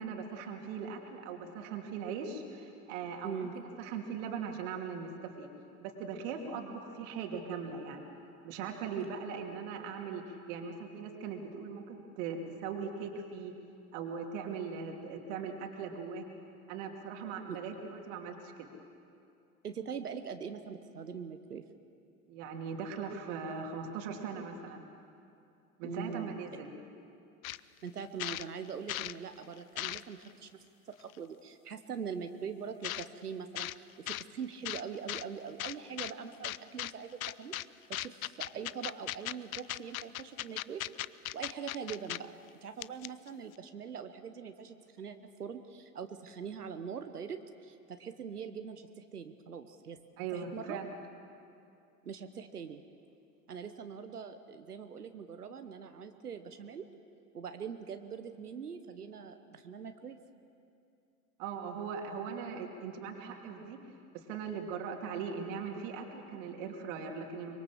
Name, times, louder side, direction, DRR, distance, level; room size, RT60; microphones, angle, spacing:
voice 1, 0.0-5.5 5.8-8.0 8.4-13.5 13.9-16.2 16.7-18.7 22.3-24.8 25.8-26.7 50.2-50.9 61.4-63.8 64.1-67.5, right 6 dB, 55° right, 3 dB, 2.8 m, -40 dB
voice 2, 19.6-21.6 25.8-26.3 27.8-37.5 37.9-40.9 41.3-42.3 42.6-50.0 50.3-50.8 52.0-52.8 53.5-56.9 57.3-60.2, right 6 dB, 85° right, 8 dB, 1.1 m, -42 dB
sound 1, 27.4-27.6 28.0-29.2 29.5-30.3 31.1-31.2 32.8-33.1 33.5-33.8 34.1-34.2 34.6-35.2 35.6-36.1 36.4-36.9 37.2-37.6 37.9-42.2 42.5-42.6 42.8-43.3, left 15 dB, 65° left, 0.6 m, -37 dB
24.5 x 22.5 x 7.2 m, 2.6 s
figure-of-eight pair, 80°, 45 cm